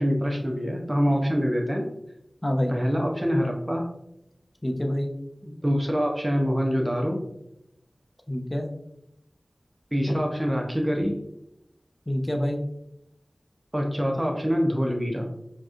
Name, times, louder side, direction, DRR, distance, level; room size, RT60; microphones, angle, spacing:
voice 1, 0.0-1.9 2.7-3.9 5.4-7.3 9.9-11.2 13.7-15.3, equal, 25° right, 0 dB, 0.6 m, -25 dB
voice 2, 2.4-2.7 4.6-5.1 8.3-8.7 12.1-12.6, equal, 20° left, 3 dB, 0.6 m, -26 dB
4.6 x 3.0 x 2.4 m, 0.81 s
wide cardioid pair, 55°, 0 cm